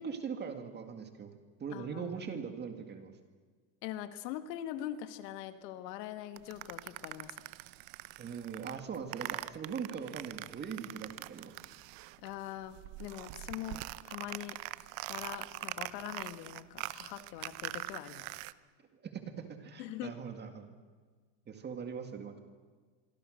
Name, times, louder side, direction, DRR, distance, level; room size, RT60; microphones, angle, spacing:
voice 1, 0.0-1.3 1.6-3.1 8.2-11.5 19.0-20.7 21.5-22.4, right 6 dB, 20° right, 6 dB, 2.0 m, -41 dB
voice 2, 1.7-2.1 3.8-7.4 12.2-14.6 15.1-18.3 19.8-20.1, left 12 dB, 75° left, 9 dB, 1.9 m, -42 dB
sound 1, 6.4-12.4 12.6-18.5, right 19 dB, 50° right, 0.8 m, -43 dB
25.5 x 25.0 x 6.5 m, 1.5 s
cardioid pair, 165°, 49 cm